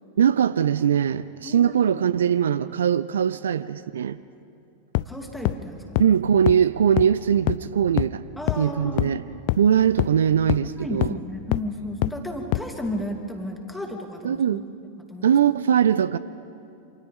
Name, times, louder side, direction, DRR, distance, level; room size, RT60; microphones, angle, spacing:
voice 1, 0.2-4.2 6.0-8.2 8.6-9.2 9.6-11.1 14.2-14.6 15.2-16.2, right 8 dB, 65° right, 16 dB, 0.4 m, -21 dB
voice 2, 1.4-1.8 5.0-6.0 8.4-9.1 10.6-14.7 15.0-15.3, left 1 dB, 5° left, 2 dB, 2.5 m, -33 dB
sound 1, 4.9-5.0 5.4-5.5 6.0-6.1 6.5-6.6 7.0-7.1 7.5-7.6 8.0-8.1 8.5-8.6 9.0-9.1 9.5-9.6 10.0-10.1 10.5-10.6 11.0-11.1 11.5-11.6 12.0-12.1 12.5-12.6, left 21 dB, 45° left, 0.4 m, -22 dB
28.0 x 26.0 x 3.7 m, 2.6 s
figure-of-eight pair, 90°, 0 cm